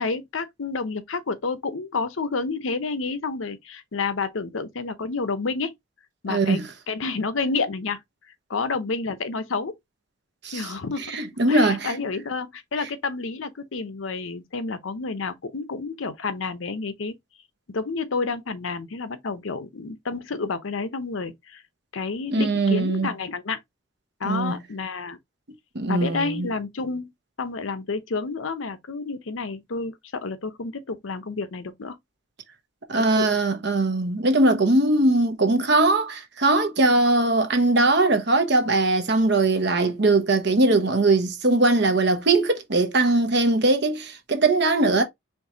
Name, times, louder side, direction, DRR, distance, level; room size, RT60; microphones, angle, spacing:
voice 1, 0.0-5.7 6.2-6.6 6.9-8.0 8.5-9.7 10.5-11.2 11.5-17.1 17.7-21.6 21.9-23.6 24.2-25.2 25.9-27.1 27.4-32.0 32.9-33.3, left 4 dB, 85° left, 0.7 m, -29 dB
voice 2, 6.3-6.6 10.4-10.7 11.1-11.9 22.3-23.1 24.2-24.6 25.7-26.5 32.9-45.0, right 2 dB, 60° right, 1.0 m, -21 dB
4.6 x 3.1 x 2.7 m
head